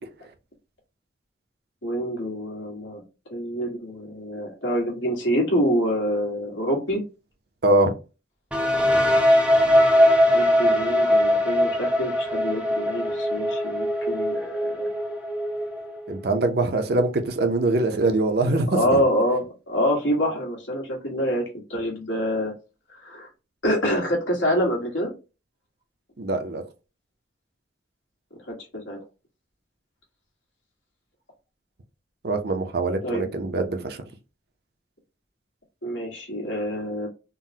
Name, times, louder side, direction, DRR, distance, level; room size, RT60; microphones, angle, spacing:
voice 1, 1.8-3.0 3.3-7.0 10.3-14.9 18.7-21.4 21.7-22.5 22.9-23.3 23.6-25.1 28.5-29.0 33.0-33.3 35.8-37.1, equal, 85° left, 1.4 m, -26 dB
sound 1, 8.5-16.2, equal, 5° right, 0.5 m, -21 dB
voice 2, 16.1-19.0 26.2-26.6 32.2-34.0, right 2 dB, 55° right, 0.5 m, -23 dB
3.8 x 2.1 x 2.7 m
head